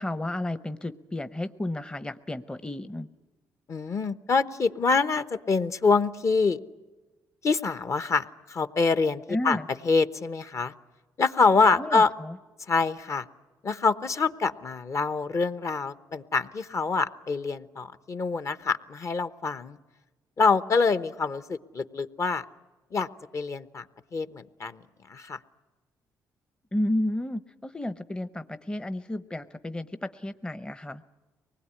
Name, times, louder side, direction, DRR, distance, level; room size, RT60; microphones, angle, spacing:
voice 1, 0.0-3.1 9.3-9.7 11.8-12.4 26.7-31.0, left 1 dB, 15° left, 12 dB, 0.8 m, -32 dB
voice 2, 3.7-6.6 7.4-9.6 9.8-10.7 11.2-12.1 12.7-13.2 13.6-19.8 20.4-22.4 22.9-23.1 23.3-23.8 24.1-24.8 25.1-25.4, left 4 dB, 45° left, 12 dB, 1.0 m, -25 dB
24.0 x 20.0 x 9.8 m, 1.2 s
cardioid pair, 85°, 7 cm